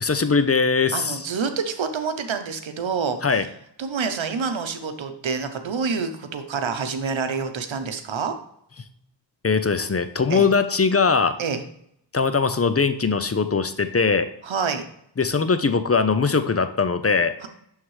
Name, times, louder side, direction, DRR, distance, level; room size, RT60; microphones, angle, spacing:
voice 1, 0.0-1.2 3.2-3.5 9.4-11.3 12.1-14.3 15.2-17.3, left 5 dB, 35° left, 11 dB, 0.6 m, -21 dB
voice 2, 0.9-3.2 3.8-8.3 10.3-10.5 11.4-11.6 14.4-14.8 17.4-17.5, right 5 dB, 85° right, 8 dB, 0.8 m, -27 dB
11.0 x 3.7 x 3.2 m, 0.71 s
cardioid pair, 40°, 45 cm